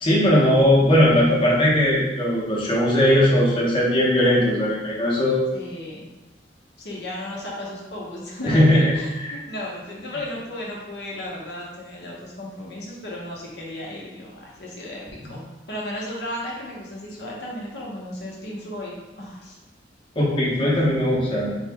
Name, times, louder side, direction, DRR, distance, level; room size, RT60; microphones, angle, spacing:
voice 1, 0.0-5.4 8.4-9.0 9.3-9.4 20.2-21.6, left 1 dB, 30° left, -6 dB, 0.9 m, -19 dB
voice 2, 5.5-6.1 6.8-19.6, left 1 dB, 65° left, -4 dB, 0.9 m, -34 dB
3.9 x 2.9 x 3.4 m, 1.1 s
head